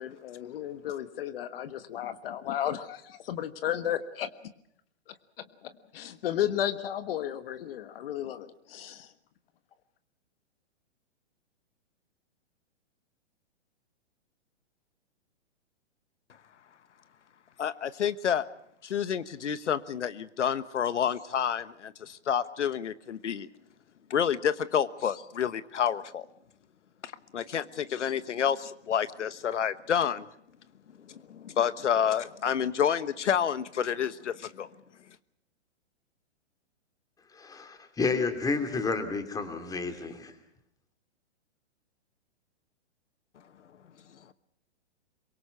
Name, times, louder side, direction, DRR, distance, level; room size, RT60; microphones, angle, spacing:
voice 1, 0.0-4.3 5.1-5.2 5.6-9.1, left 11 dB, 55° left, 11 dB, 1.5 m, -33 dB
voice 2, 17.6-18.5 18.8-23.5 24.1-26.3 27.0-30.3 31.1-34.7, left 8 dB, 85° left, 14 dB, 1.3 m, -29 dB
voice 3, 37.3-40.3, left 4 dB, 10° left, 8 dB, 2.9 m, -30 dB
25.0 x 23.0 x 6.0 m, 0.73 s
hypercardioid pair, 140°, 35 cm